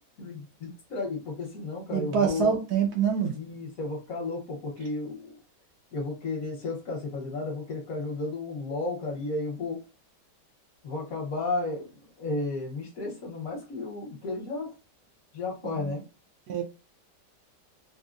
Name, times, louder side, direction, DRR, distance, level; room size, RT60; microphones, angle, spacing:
voice 1, 0.2-2.6 3.3-5.4 5.9-9.8 10.8-11.9 12.2-14.7 15.3-16.0, left 3 dB, 55° left, 1.3 m, -33 dB
voice 2, 1.9-3.3 15.6-15.9 16.5-16.6, right 7 dB, 70° right, 1.0 m, -26 dB
3.6 x 2.1 x 2.5 m
omnidirectional pair, 1.9 m